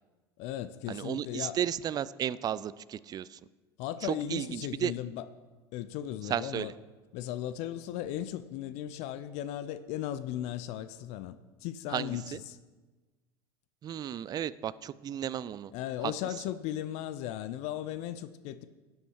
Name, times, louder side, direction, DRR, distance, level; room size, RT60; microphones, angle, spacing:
voice 1, 0.4-1.6 3.8-5.2 5.7-6.7 7.1-12.6 15.7-18.7, left 12 dB, 55° left, 13 dB, 0.5 m, -37 dB
voice 2, 0.9-3.4 4.0-4.9 6.2-6.7 11.9-12.4 13.8-15.7 16.0-16.1, right 10 dB, 30° right, 19 dB, 0.4 m, -34 dB
11.0 x 7.1 x 4.6 m, 1.3 s
hypercardioid pair, 80°, 13 cm